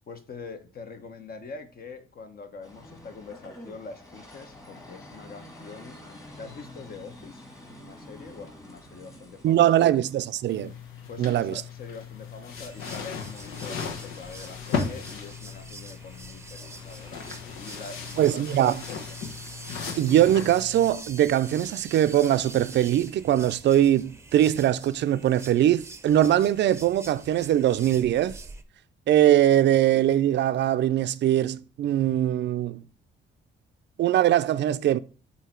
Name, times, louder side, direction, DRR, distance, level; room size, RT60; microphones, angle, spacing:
voice 1, 0.1-7.5 7.8-9.7 11.1-17.2 17.6-19.2, left 4 dB, 50° left, 1.1 m, -43 dB
sound 1, 2.6-19.8, left 1 dB, 15° left, 1.9 m, -50 dB
voice 2, 9.4-10.7 11.2-11.5 18.2-18.7 20.0-28.4 29.1-32.8 34.0-35.0, right 12 dB, 65° right, 0.5 m, -22 dB
sound 2, 10.5-20.9, left 5 dB, 90° left, 1.1 m, -37 dB
sound 3, 12.5-28.6, right 3 dB, 15° right, 0.7 m, -45 dB
8.1 x 2.8 x 4.5 m
cardioid pair, 90°, 20 cm